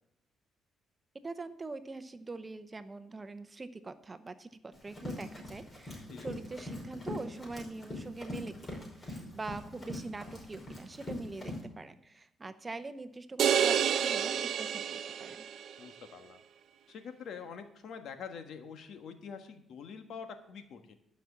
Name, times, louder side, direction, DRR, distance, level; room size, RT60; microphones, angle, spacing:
voice 1, 1.2-15.5, right 3 dB, 25° right, 12 dB, 0.8 m, -43 dB
Run, 4.7-11.6, left 1 dB, 35° left, 5.2 m, -42 dB
sound 1, 13.4-15.7, right 8 dB, 70° right, 0.7 m, -29 dB
voice 2, 15.8-16.4 16.9-20.9, left 6 dB, 70° left, 7 dB, 1.3 m, -45 dB
12.5 x 6.1 x 7.1 m, 0.75 s
cardioid pair, 90°, 0 cm